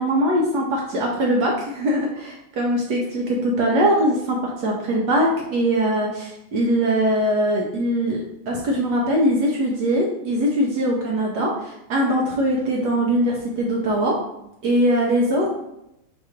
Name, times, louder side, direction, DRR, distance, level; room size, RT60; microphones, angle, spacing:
voice 1, 0.0-14.2 14.6-15.5, equal, 70° right, -1 dB, 1.0 m, -21 dB
4.6 x 2.5 x 4.3 m, 0.83 s
omnidirectional pair, 2.4 m